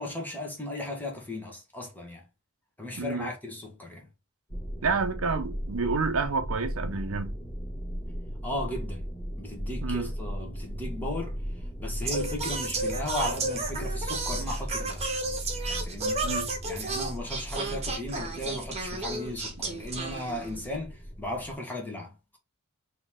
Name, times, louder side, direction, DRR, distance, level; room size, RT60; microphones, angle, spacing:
voice 1, 0.0-2.2 2.8-4.1 4.8-5.0 8.4-9.1 9.4-11.4 11.8-15.0 15.7-16.3 16.6-22.4, left 1 dB, 10° left, 1.3 m, -36 dB
voice 2, 3.0-3.3 4.8-7.4 9.8-10.1 16.2-16.5, right 4 dB, 75° right, 0.7 m, -29 dB
sound 1, 4.5-21.5, equal, 25° left, 1.6 m, -37 dB
Singing, 12.0-20.8, right 3 dB, 30° right, 1.2 m, -33 dB
4.0 x 3.0 x 3.5 m
head